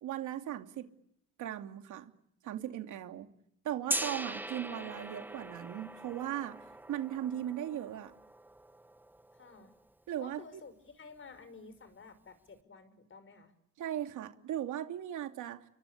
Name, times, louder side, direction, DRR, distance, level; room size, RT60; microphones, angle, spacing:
voice 1, 0.0-0.9 1.4-2.1 2.4-3.3 3.6-6.6 6.9-8.1 10.1-10.4 13.8-15.6, right 11 dB, 85° right, 6 dB, 2.7 m, -38 dB
Gong, 3.9-9.8, right 1 dB, 5° right, 1.4 m, -41 dB
voice 2, 9.3-9.7 10.2-13.5, left 4 dB, 40° left, 12 dB, 5.7 m, -52 dB
29.5 x 23.5 x 8.5 m, 0.75 s
cardioid pair, 90°, 30 cm